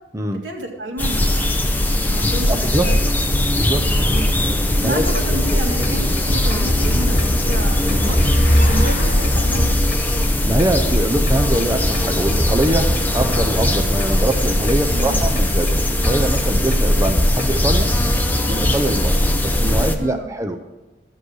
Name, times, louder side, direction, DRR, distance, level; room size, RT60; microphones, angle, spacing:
voice 1, 0.4-1.7 2.1-3.0 4.0-4.3 4.8-9.7 14.9-15.2 20.0-20.3, right 1 dB, 85° right, 1 dB, 2.3 m, -30 dB
sound 1, 1.0-19.9, left 1 dB, 10° left, 0.8 m, -19 dB
voice 2, 2.5-2.9 3.5-4.0 4.8-5.0 5.5-5.6 7.9-8.0 10.1-17.9 18.4-20.6, right 1 dB, 15° right, 5 dB, 0.7 m, -23 dB
sound 2, 5.0-17.5, equal, 50° left, 2.3 m, -26 dB
12.5 x 7.9 x 6.3 m, 1.1 s
head